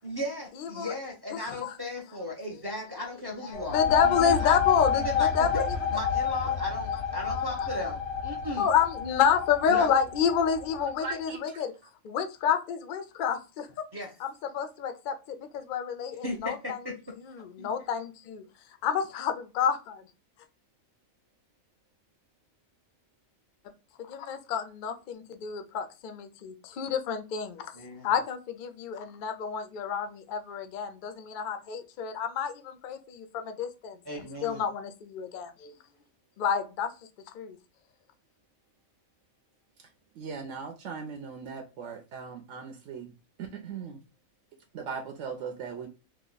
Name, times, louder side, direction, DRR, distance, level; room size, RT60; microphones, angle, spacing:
voice 1, 0.0-4.6 4.9-8.7 9.7-9.9 13.9-14.1 16.2-17.0 27.7-28.1 34.0-34.6, left 1 dB, 35° right, -1 dB, 0.4 m, -36 dB
voice 2, 0.6-0.9 1.4-1.8 3.5-5.6 7.3-7.5 8.6-11.7 12.0-13.9 14.2-16.8 17.2-18.4 18.8-20.0 24.0-27.7 28.0-35.7 36.4-36.9 37.3-37.6, left 7 dB, 70° left, 8 dB, 0.4 m, -29 dB
sound 1, 3.5-11.0, left 7 dB, 85° left, 1.1 m, -29 dB
voice 3, 11.0-11.6 40.2-43.1 43.4-44.0 44.7-45.9, right 5 dB, 70° right, 3 dB, 0.9 m, -38 dB
2.8 x 2.1 x 3.8 m, 0.30 s
omnidirectional pair, 1.4 m